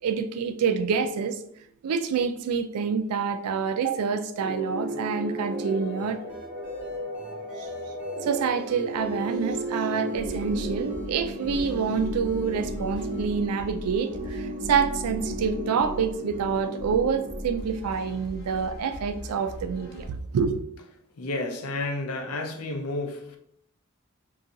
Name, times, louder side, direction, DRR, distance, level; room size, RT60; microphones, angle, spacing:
voice 1, 0.0-1.4 1.8-6.2 7.6-7.7 8.2-20.6, right 6 dB, 90° right, 0.4 m, -27 dB
sound 1, 4.4-18.1, right 1 dB, 35° right, 0.5 m, -35 dB
sound 2, 6.0-13.2, left 2 dB, 5° right, 0.8 m, -47 dB
sound 3, 10.1-20.1, equal, 50° left, 0.8 m, -39 dB
voice 2, 21.2-23.4, left 2 dB, 85° left, 0.5 m, -31 dB
2.5 x 2.3 x 3.8 m
head